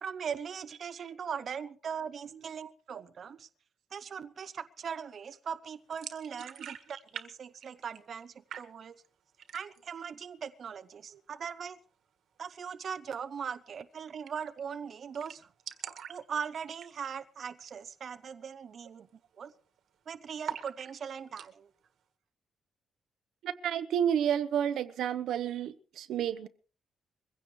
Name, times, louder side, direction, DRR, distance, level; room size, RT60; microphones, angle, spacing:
voice 1, 0.0-3.5 3.9-9.0 9.5-11.8 12.4-15.5 16.1-19.1 19.4-19.5 20.1-21.7, right 7 dB, 45° right, 0.7 m, -40 dB
sound 1, 5.9-7.3 7.5-8.2 8.5-9.1 9.4-9.9 10.3-10.4 10.7-11.3 13.0-13.2 13.5-13.6 13.8-13.9 14.3-14.6 14.9-15.0 15.1-17.2 17.6-17.8 18.2-18.3 18.8-19.1 19.3-20.0 20.4-21.5, right 8 dB, 65° right, 1.6 m, -44 dB
voice 2, 23.4-26.5, right 9 dB, 85° right, 1.0 m, -30 dB
22.5 x 16.0 x 3.2 m
wide cardioid pair, 160°, 0 cm